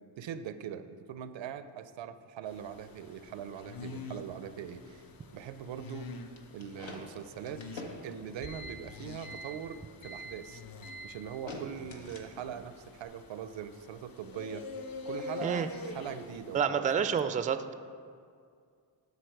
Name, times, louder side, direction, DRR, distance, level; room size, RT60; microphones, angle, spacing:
voice 1, 0.2-5.0 5.3-6.1 6.5-10.6 11.0-14.7 15.1-17.1, right 8 dB, 70° right, 12 dB, 0.6 m, -41 dB
sound 1, 2.5-16.6, left 3 dB, 50° left, 0.8 m, -46 dB
sound 2, 6.4-12.6, equal, 75° left, 1.3 m, -45 dB
voice 2, 16.5-17.7, right 7 dB, 20° right, 11 dB, 0.4 m, -29 dB
12.0 x 4.2 x 4.6 m, 2.2 s
cardioid pair, 55°, 47 cm